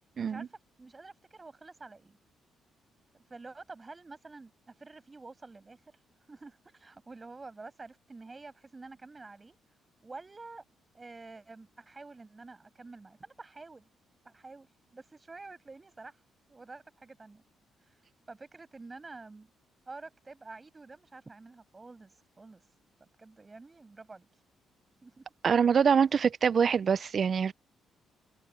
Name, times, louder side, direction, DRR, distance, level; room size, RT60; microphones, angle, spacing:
voice 1, 0.2-2.2 3.2-6.0 6.3-9.6 10.0-10.6 10.9-13.9 14.2-16.2 16.5-17.4 17.8-19.5 19.9-22.7 23.0-24.4 25.0-25.3, right 3 dB, 25° right, 6.4 m, -49 dB
voice 2, 25.4-27.5, right 6 dB, 45° right, 0.4 m, -24 dB
open air
cardioid pair, 90°, 0 cm